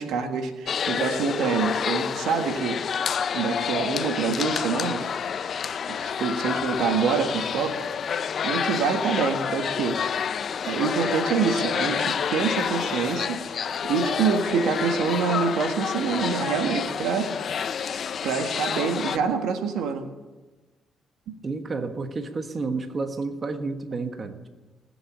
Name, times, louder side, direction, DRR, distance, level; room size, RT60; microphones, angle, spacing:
voice 1, 0.0-2.8 3.3-5.4 5.9-7.9 8.4-10.0 10.6-13.5 13.8-17.7 18.2-20.1, right 6 dB, 85° right, 6 dB, 1.6 m, -26 dB
sound 1, 0.7-19.2, left 7 dB, 55° left, 0.6 m, -29 dB
voice 2, 21.4-24.5, right 3 dB, 35° right, 7 dB, 1.3 m, -30 dB
20.0 x 7.1 x 10.0 m, 1.2 s
cardioid pair, 90°, 0 cm